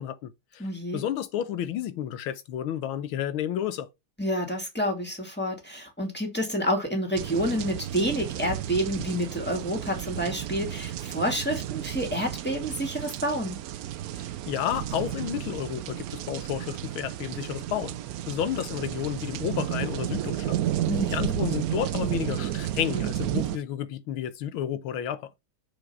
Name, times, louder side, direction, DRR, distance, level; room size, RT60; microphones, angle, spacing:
voice 1, 0.0-0.7 0.9-3.9 14.2-18.0 18.3-20.6 21.1-25.3, left 10 dB, 90° left, 1.7 m, -31 dB
voice 2, 0.6-1.0 4.2-13.6 20.9-21.3, equal, 5° left, 2.4 m, -29 dB
sound 1, 7.2-23.6, right 12 dB, 80° right, 0.8 m, -32 dB
6.9 x 5.0 x 5.6 m
omnidirectional pair, 2.2 m